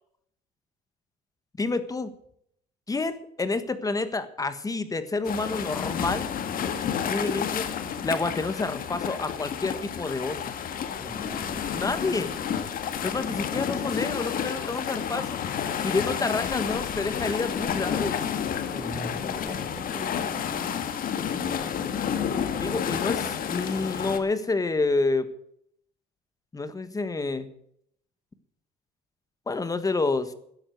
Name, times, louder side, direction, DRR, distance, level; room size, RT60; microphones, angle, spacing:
voice 1, 1.6-2.1 2.9-6.3 7.1-7.7 8.0-10.5 11.7-12.3 13.0-15.4 15.8-18.2 22.6-25.3 26.5-27.5 29.5-30.3, left 3 dB, 20° left, 12 dB, 1.4 m, -28 dB
sound 1, 5.2-24.2, left 8 dB, 55° left, 1.7 m, -30 dB
voice 2, 11.0-12.6 18.7-20.9 21.3-22.0, equal, ahead, 8 dB, 1.1 m, -41 dB
13.0 x 10.0 x 7.7 m, 0.69 s
cardioid pair, 110°, 17 cm